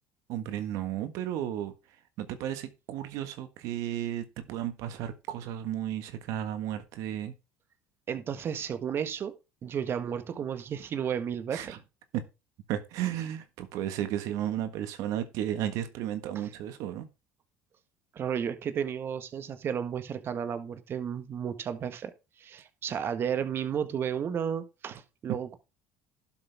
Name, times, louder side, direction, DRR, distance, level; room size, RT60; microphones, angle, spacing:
voice 1, 0.3-1.7 2.2-7.3 11.5-11.8 12.1-12.2 12.7-17.1, right 11 dB, 70° right, 1.5 m, -33 dB
voice 2, 8.1-9.3 9.6-11.8 16.3-16.5 18.1-22.1 22.4-25.6, right 8 dB, 40° right, 1.6 m, -33 dB
12.0 x 7.4 x 3.5 m
cardioid pair, 115°, 6 cm